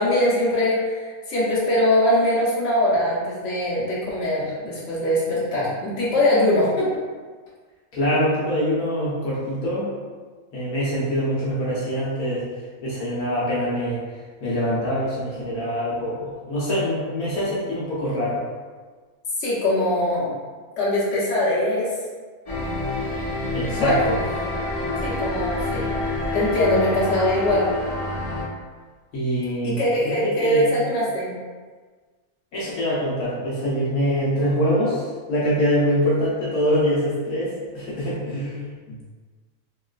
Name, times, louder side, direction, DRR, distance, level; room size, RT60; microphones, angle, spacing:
voice 1, 0.0-6.9 19.4-20.4 20.8-21.9 23.8-24.0 25.0-25.9 26.3-27.7 29.6-31.3, left 1 dB, 55° left, -8 dB, 1.2 m, -22 dB
voice 2, 7.9-9.9 10.5-12.5 12.8-14.0 14.4-18.4 23.5-24.2 29.1-30.7 32.5-39.1, equal, 75° left, -8 dB, 1.2 m, -24 dB
sound 1, 22.5-28.4, left 2 dB, 35° left, 0.7 m, -27 dB
3.0 x 2.9 x 2.4 m, 1.5 s
omnidirectional pair, 1.6 m